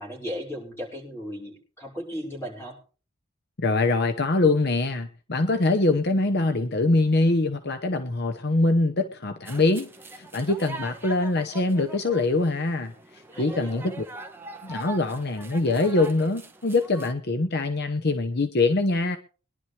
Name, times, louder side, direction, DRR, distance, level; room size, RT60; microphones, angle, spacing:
voice 1, 0.0-2.8 13.3-14.0, equal, 10° left, -2 dB, 5.3 m, -36 dB
voice 2, 3.6-9.9 10.1-14.0 14.6-19.2, left 2 dB, 50° left, 6 dB, 0.9 m, -24 dB
sound 1, 9.4-17.1, right 3 dB, 10° right, 1.2 m, -42 dB
22.5 x 11.5 x 3.3 m, 0.37 s
head